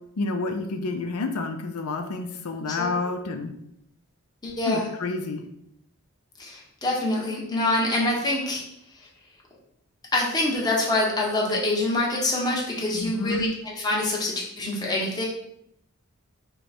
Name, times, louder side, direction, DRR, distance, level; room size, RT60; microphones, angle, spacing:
voice 1, 0.2-3.5 4.6-5.4 12.9-13.5, left 3 dB, 85° left, 5 dB, 0.5 m, -29 dB
voice 2, 4.4-4.9 6.4-8.6 10.1-15.3, left 2 dB, 20° left, -3 dB, 1.0 m, -25 dB
5.4 x 2.2 x 4.3 m, 0.76 s
head